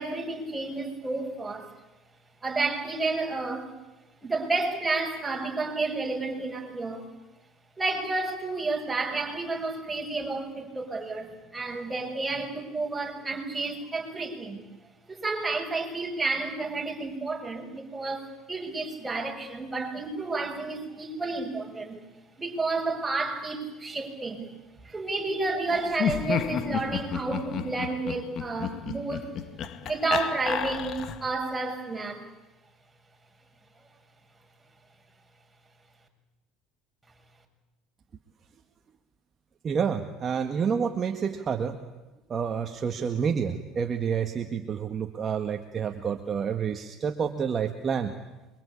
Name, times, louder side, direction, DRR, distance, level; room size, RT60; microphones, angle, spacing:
voice 1, 0.0-1.7 2.4-3.7 4.2-7.1 7.8-14.6 15.1-22.0 22.4-24.5 24.8-29.3 29.8-32.2, right 3 dB, 15° right, 1 dB, 7.2 m, -31 dB
Laughter, 25.9-31.4, left 8 dB, 50° left, 2.0 m, -32 dB
voice 2, 39.6-41.8 42.3-48.1, right 7 dB, 35° right, 5 dB, 1.9 m, -29 dB
27.5 x 24.0 x 8.7 m, 1.1 s
supercardioid pair, 90°, 0 cm